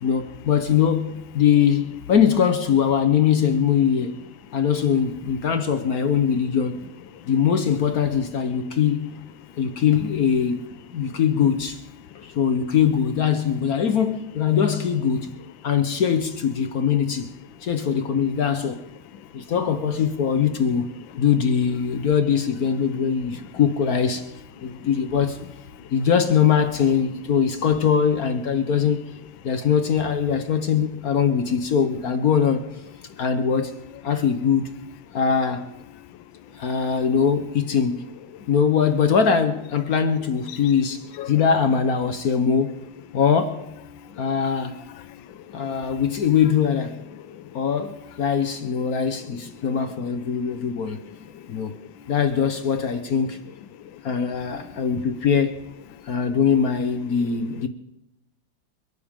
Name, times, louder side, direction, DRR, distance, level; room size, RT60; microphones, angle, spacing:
voice 1, 0.0-4.2 4.5-6.9 7.3-9.1 9.6-10.6 10.9-11.8 12.2-15.3 15.6-17.3 17.6-18.8 19.3-20.9 21.2-24.3 24.6-25.5 25.9-29.0 29.4-32.7 33.2-33.7 34.0-34.7 35.1-35.7 36.5-38.1 38.5-42.8 43.1-43.6 44.2-44.8 45.5-47.0 47.5-51.1 51.5-51.8 52.1-53.4 54.0-55.6 56.1-57.7, left 7 dB, 55° left, 1.2 m, -22 dB
voice 2, 24.6-24.9 38.3-38.4 40.5-40.7 41.2-41.5 44.2-44.3 44.9-45.2 45.5-46.0 47.1-47.6 49.4-49.7 50.6-50.7 51.0-51.5 54.5-54.8 57.2-57.7, left 10 dB, 75° left, 1.5 m, -42 dB
29.5 x 12.0 x 3.7 m
omnidirectional pair, 2.2 m